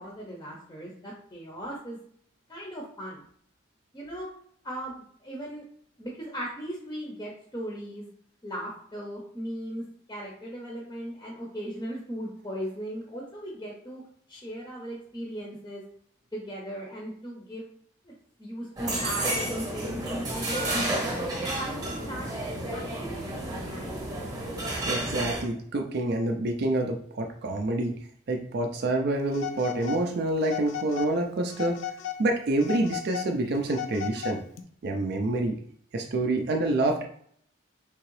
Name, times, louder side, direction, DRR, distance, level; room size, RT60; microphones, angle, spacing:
voice 1, 0.0-2.0 2.5-3.2 3.9-4.3 4.6-5.6 6.0-8.1 8.4-9.8 10.1-14.0 14.3-15.8 16.3-17.7 18.0-20.6 21.0-21.3 21.6-22.3 22.7-24.0, equal, 20° left, -2 dB, 0.6 m, -38 dB
sound 1, 18.8-25.4, right 1 dB, 20° right, 0.9 m, -31 dB
voice 2, 24.9-28.0 28.3-31.8 32.2-34.4 34.8-35.6 35.9-37.0, right 2 dB, 55° right, 2 dB, 0.4 m, -27 dB
Telephone, 29.3-30.0 30.4-31.1 31.5-32.2 32.6-34.6, left 11 dB, 85° left, 0.4 m, -36 dB
3.6 x 2.8 x 3.1 m, 0.62 s
head